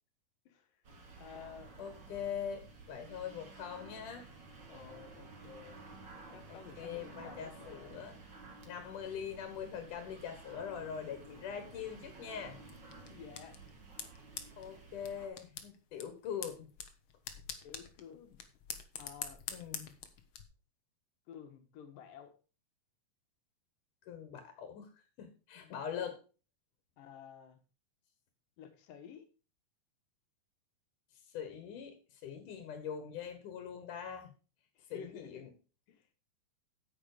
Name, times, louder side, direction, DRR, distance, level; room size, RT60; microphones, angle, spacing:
sound 1, 0.8-15.3, right 3 dB, 40° right, 2.3 m, -53 dB
voice 1, 1.2-1.7 4.7-5.9 6.3-8.1 9.0-9.1 10.5-10.6 13.1-13.9 14.4-14.5 17.6-18.4 19.0-19.4 21.3-22.3 25.6-25.7 27.0-27.6 28.6-29.3 34.8-35.5 35.9-36.1, left 8 dB, 90° left, 7 dB, 3.2 m, -52 dB
voice 2, 1.8-4.3 6.5-8.1 8.6-12.6 14.6-16.7 19.5-19.9 24.1-24.9 25.2-26.2 31.3-34.3 34.9-35.5, left 8 dB, 70° left, 7 dB, 3.0 m, -42 dB
sound 2, 12.7-20.4, left 8 dB, 55° left, 1.5 m, -47 dB
9.6 x 8.8 x 5.0 m, 0.34 s
omnidirectional pair, 3.8 m